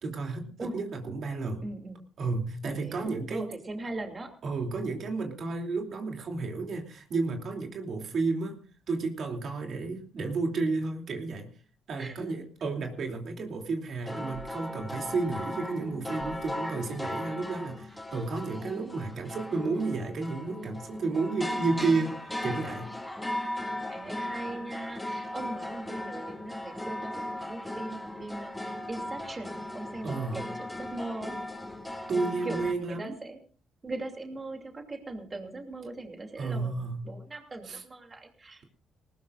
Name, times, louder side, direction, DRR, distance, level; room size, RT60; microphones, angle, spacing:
voice 1, 0.0-1.6 2.2-3.5 4.4-8.6 8.9-11.5 11.9-22.9 30.0-30.5 32.1-33.1 36.4-37.1 37.7-37.8, right 3 dB, 60° right, 3 dB, 2.9 m, -32 dB
voice 2, 1.6-2.0 2.6-4.3 12.0-12.3 16.4-16.5 23.9-31.4 32.4-33.4 33.8-36.7 37.0-38.6, right 2 dB, 30° right, 3 dB, 2.7 m, -40 dB
sound 1, 14.1-32.7, left 1 dB, 5° left, 3.6 m, -37 dB
19.5 x 19.5 x 2.5 m, 0.41 s
cardioid pair, 90°, 0 cm